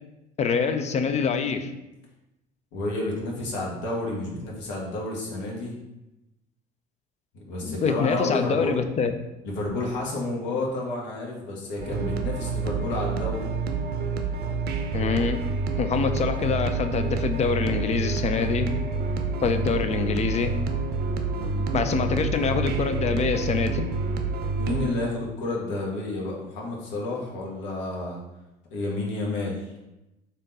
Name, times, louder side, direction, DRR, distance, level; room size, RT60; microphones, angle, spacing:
voice 1, 0.4-1.7 7.6-9.1 14.9-15.4 15.8-18.7 19.4-20.6 21.7-23.9, left 5 dB, 35° left, 8 dB, 0.5 m, -25 dB
voice 2, 2.7-5.8 7.3-8.7 9.4-13.4 21.3-21.7 24.6-28.2 28.7-29.7, left 2 dB, 65° left, -2 dB, 1.2 m, -30 dB
sound 1, 11.8-24.9, right 4 dB, 50° right, 0.6 m, -28 dB
3.6 x 2.7 x 3.8 m, 0.95 s
hypercardioid pair, 65°, 21 cm